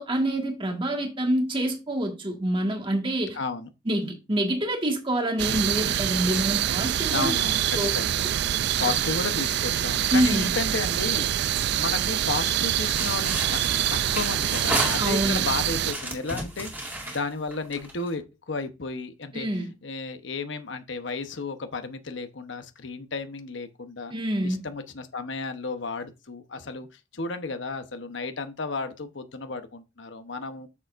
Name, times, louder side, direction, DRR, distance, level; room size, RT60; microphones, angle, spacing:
voice 1, 0.0-3.4 3.8-7.3 7.7-7.9 10.1-10.5 15.0-15.5 19.3-19.7 24.1-24.6, right 1 dB, 30° right, 1.7 m, -26 dB
voice 2, 3.3-3.7 7.1-7.6 7.9-8.1 8.5-13.6 13.9-19.5 19.8-24.1 24.4-30.7, left 4 dB, 80° left, 1.0 m, -33 dB
sound 1, 5.4-15.9, right 11 dB, 60° right, 0.4 m, -25 dB
sound 2, 12.9-15.4 15.8-18.1, right 1 dB, 10° right, 2.2 m, -32 dB
8.5 x 6.9 x 2.5 m
head